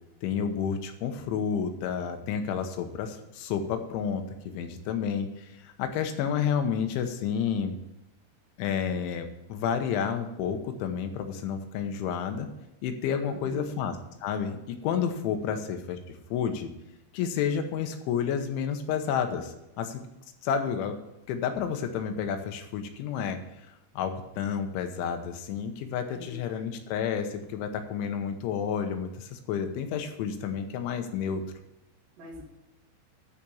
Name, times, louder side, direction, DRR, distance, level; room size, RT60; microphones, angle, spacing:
voice 1, 0.2-4.2 4.5-7.7 8.6-12.5 12.8-13.9 14.2-16.7 17.1-20.0 20.4-21.0 21.3-23.4 23.9-31.4, left 7 dB, 85° left, 6 dB, 3.4 m, -30 dB
voice 2, 13.2-13.8 15.4-15.6 26.1-26.7 32.2-32.4, equal, 65° right, -3 dB, 4.5 m, -43 dB
11.5 x 5.2 x 7.0 m, 0.92 s
omnidirectional pair, 5.4 m